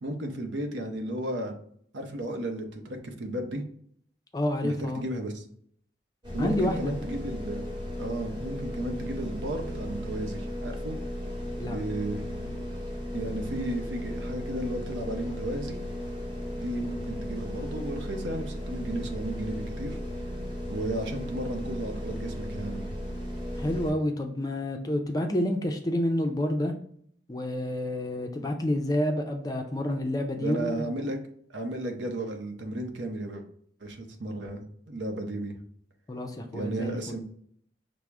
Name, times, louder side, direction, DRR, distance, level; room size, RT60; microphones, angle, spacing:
voice 1, 0.0-1.5 1.9-3.6 4.6-5.4 6.3-7.7 8.0-11.0 11.6-12.5 13.1-15.8 16.5-20.0 20.7-22.9 30.4-31.2 31.5-33.4 33.8-35.5 36.5-37.2, right 1 dB, 75° right, 4 dB, 0.7 m, -34 dB
voice 2, 4.3-5.0 6.4-6.9 11.6-11.8 23.6-26.7 27.3-30.8 36.1-37.0, left 1 dB, 20° left, 4 dB, 0.4 m, -29 dB
sound 1, 6.2-23.9, equal, 25° right, 1.4 m, -35 dB
6.0 x 2.0 x 3.4 m, 0.63 s
head